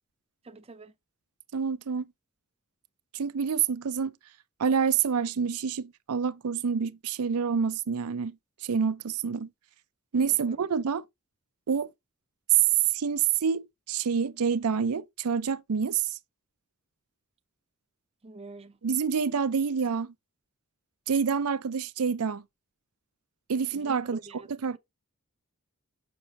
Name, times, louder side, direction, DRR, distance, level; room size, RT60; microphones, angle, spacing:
voice 1, 0.4-0.9 10.2-10.6 18.2-18.8 23.7-24.8, right 2 dB, 25° right, 0.5 m, -46 dB
voice 2, 1.5-2.0 3.1-4.1 4.6-8.3 8.6-9.5 10.1-11.0 11.7-11.9 12.9-16.1 18.8-20.1 21.1-22.4 23.5-24.2 24.6-24.8, right 6 dB, 80° right, 0.5 m, -27 dB
6.5 x 5.8 x 2.8 m
head